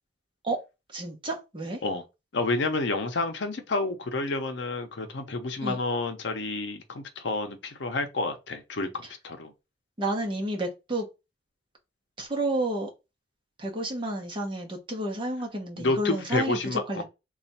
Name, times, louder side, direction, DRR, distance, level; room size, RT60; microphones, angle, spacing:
voice 1, 0.9-1.8 5.6-5.8 10.0-11.1 12.2-12.9 13.6-17.0, right 1 dB, 25° right, 0.9 m, -30 dB
voice 2, 2.3-9.5 15.8-17.0, left 2 dB, 70° left, 0.6 m, -29 dB
3.3 x 2.4 x 4.1 m
head